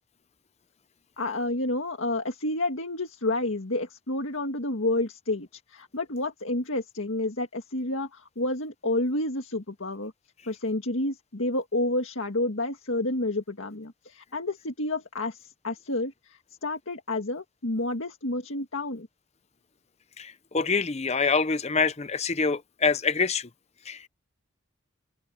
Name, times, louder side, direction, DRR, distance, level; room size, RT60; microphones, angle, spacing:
voice 1, 1.2-10.1 10.5-19.1, left 2 dB, 70° left, 1.9 m, -30 dB
voice 2, 20.2-23.5 23.8-24.1, left 4 dB, 30° left, 0.8 m, -26 dB
head